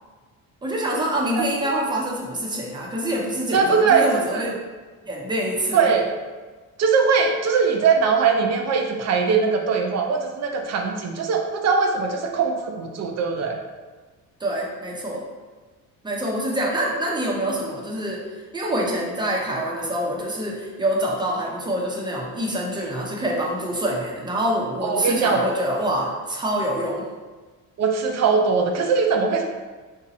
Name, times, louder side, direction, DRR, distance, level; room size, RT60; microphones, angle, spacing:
voice 1, 0.6-4.5 5.0-5.9 14.4-15.2 16.0-18.2 18.5-27.1, right 1 dB, 15° right, -2 dB, 0.7 m, -25 dB
voice 2, 3.5-4.6 5.7-6.1 6.8-13.6 24.8-25.4 27.8-29.4, right 5 dB, 50° right, 3 dB, 0.6 m, -21 dB
3.5 x 2.9 x 4.1 m, 1.3 s
cardioid pair, 135°, 34 cm